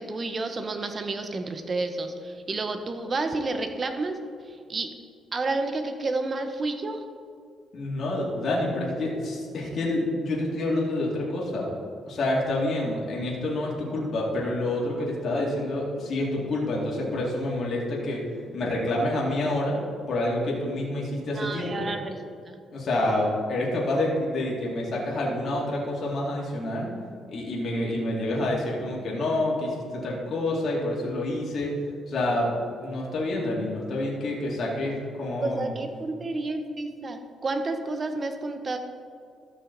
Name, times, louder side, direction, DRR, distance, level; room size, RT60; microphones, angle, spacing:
voice 1, 0.0-4.9 5.3-7.0 21.3-22.2 22.5-22.6 35.4-38.8, right 3 dB, 35° right, 6 dB, 1.0 m, -30 dB
voice 2, 7.7-11.7 12.1-18.3 18.5-19.8 20.1-21.9 22.7-26.9 27.3-31.8 32.1-32.5 32.8-35.7, left 1 dB, 55° left, -4 dB, 2.4 m, -28 dB
14.0 x 6.0 x 4.1 m, 2.2 s
cardioid pair, 90°, 0 cm